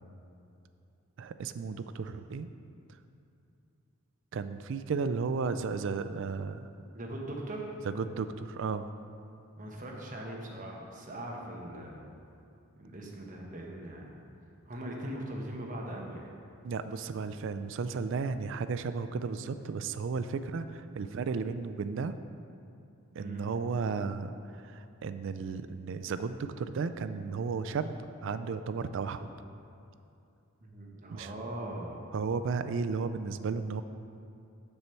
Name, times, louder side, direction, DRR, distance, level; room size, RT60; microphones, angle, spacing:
voice 1, 1.2-2.5 4.3-6.7 7.9-8.9 16.6-22.2 23.2-28.0 28.2-29.3 31.1-31.3 32.1-33.8, right 5 dB, 55° right, 11 dB, 0.3 m, -34 dB
voice 2, 6.9-7.7 9.6-12.1 12.8-14.2 14.7-16.3 23.2-23.4 30.6-32.1, right 1 dB, 35° right, -1 dB, 1.0 m, -40 dB
6.9 x 6.8 x 4.4 m, 2.6 s
head